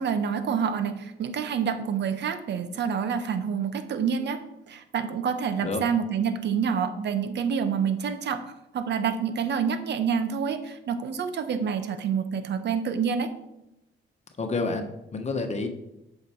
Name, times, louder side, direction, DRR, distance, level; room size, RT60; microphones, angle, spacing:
voice 1, 0.0-4.4 4.7-13.3, right 7 dB, 60° right, 10 dB, 0.9 m, -27 dB
voice 2, 14.4-15.7, left 3 dB, 35° left, 5 dB, 1.3 m, -29 dB
8.1 x 5.9 x 4.5 m, 0.88 s
cardioid pair, 90°, 20 cm